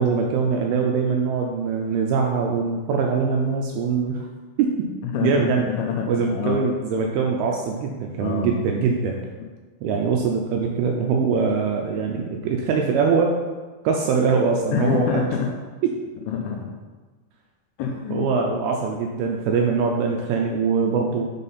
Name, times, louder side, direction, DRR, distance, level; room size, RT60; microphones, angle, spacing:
voice 1, 0.0-4.3 4.6-4.9 5.2-5.7 6.1-9.1 9.8-13.3 13.8-15.3 15.8-15.9 18.1-21.3, right 5 dB, 85° right, 1 dB, 2.3 m, -22 dB
voice 2, 5.0-6.6 8.2-8.5 9.4-9.5 14.7-15.5 16.3-16.8 17.8-18.3, left 7 dB, 80° left, 1 dB, 2.4 m, -26 dB
6.4 x 5.4 x 4.1 m, 1.3 s
omnidirectional pair, 5.0 m